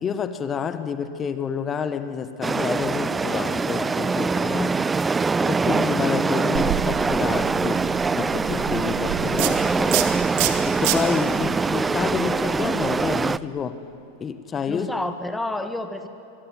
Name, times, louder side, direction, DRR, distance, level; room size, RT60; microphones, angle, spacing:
voice 1, 0.0-4.8 5.5-7.8 8.1-10.0 10.6-13.8 14.2-14.9, left 7 dB, 25° left, 11 dB, 1.5 m, -29 dB
sound 1, 2.4-13.4, right 4 dB, 15° right, 0.5 m, -23 dB
sound 2, 6.5-13.2, right 12 dB, 55° right, 2.4 m, -30 dB
voice 2, 14.7-16.1, left 2 dB, 5° left, 8 dB, 1.4 m, -30 dB
24.5 x 22.5 x 9.3 m, 2.8 s
hypercardioid pair, 110°, 0 cm